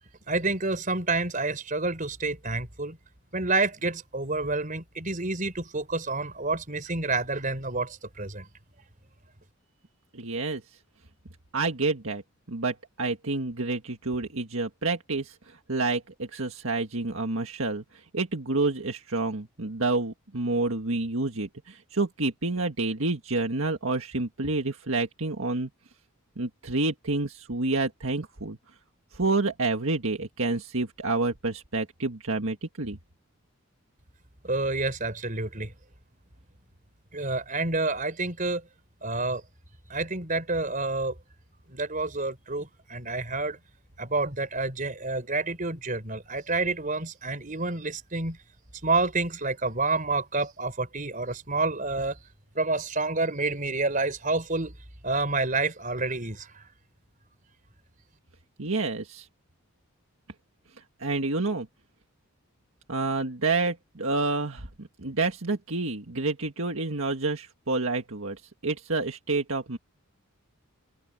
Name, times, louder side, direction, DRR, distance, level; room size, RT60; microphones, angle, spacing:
voice 1, 0.3-3.0 3.3-8.4 34.4-35.7 37.1-38.6 39.0-39.4 39.9-41.1 41.7-43.6 44.0-48.4 48.8-52.2 52.5-54.7 55.0-56.5, right 3 dB, 35° right, 4.5 m, -28 dB
voice 2, 10.1-10.6 11.5-12.2 12.5-17.8 18.1-25.7 26.4-28.6 29.1-33.0 58.6-59.3 61.0-61.7 62.9-64.7 65.0-68.4 68.6-69.8, right 3 dB, 65° right, 1.8 m, -28 dB
head